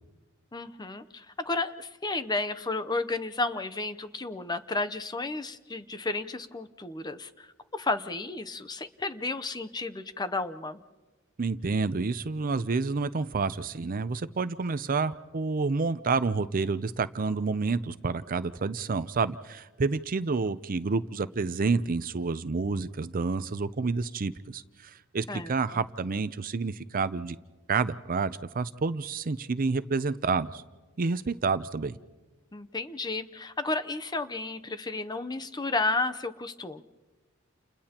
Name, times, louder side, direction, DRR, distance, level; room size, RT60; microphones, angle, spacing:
voice 1, 0.5-7.5 7.7-10.8 25.3-25.8 32.5-36.8, left 3 dB, 20° left, 11 dB, 0.7 m, -32 dB
voice 2, 11.4-27.4 27.7-30.6 31.0-32.0, right 4 dB, 45° right, 14 dB, 0.5 m, -29 dB
30.0 x 29.5 x 2.9 m, 1.2 s
head